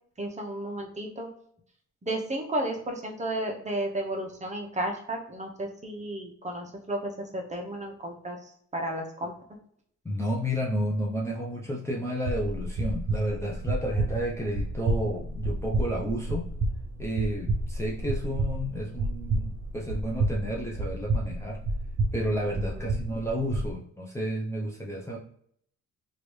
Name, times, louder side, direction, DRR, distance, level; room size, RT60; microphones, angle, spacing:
voice 1, 0.2-1.3 2.0-9.3 22.6-23.0, right 1 dB, 25° right, 2 dB, 0.9 m, -33 dB
voice 2, 10.0-16.5 17.0-21.6 22.1-25.2, equal, 10° left, -3 dB, 0.6 m, -31 dB
sound 1, 12.3-23.7, right 2 dB, 55° right, 0.8 m, -30 dB
3.1 x 2.6 x 3.2 m, 0.66 s
cardioid pair, 90°, 30 cm